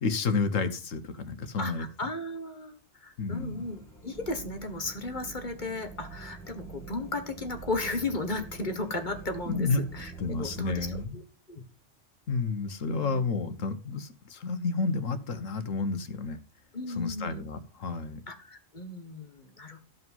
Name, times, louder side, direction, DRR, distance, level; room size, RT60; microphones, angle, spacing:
voice 1, 0.0-1.9 3.2-3.6 9.5-9.8 10.2-11.2 12.3-16.4 16.9-18.2, left 4 dB, 85° left, 10 dB, 1.6 m, -30 dB
voice 2, 1.6-11.2 11.5-11.6 16.7-17.4 18.3-19.8, left 2 dB, 40° left, 6 dB, 1.7 m, -35 dB
sound 1, 3.3-11.1, right 5 dB, ahead, 2.4 m, -45 dB
15.0 x 5.5 x 5.5 m, 0.35 s
omnidirectional pair, 1.3 m